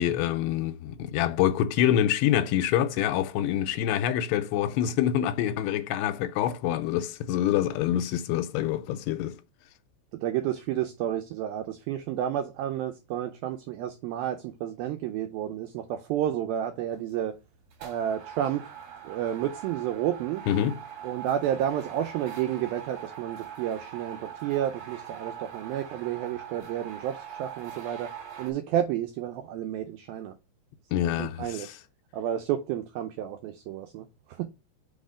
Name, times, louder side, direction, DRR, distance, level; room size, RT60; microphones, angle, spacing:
voice 1, 0.0-9.4 20.5-20.8 30.9-31.8, left 11 dB, 85° left, 2.8 m, -26 dB
voice 2, 10.1-17.4 17.8-18.7 19.0-20.4 21.0-28.1 28.4-30.4 31.2-31.7 32.1-34.4, right 11 dB, 80° right, 2.1 m, -31 dB
sound 1, 16.9-17.2 17.7-28.5, right 9 dB, 50° right, 2.3 m, -42 dB
5.7 x 4.2 x 4.9 m
omnidirectional pair, 4.8 m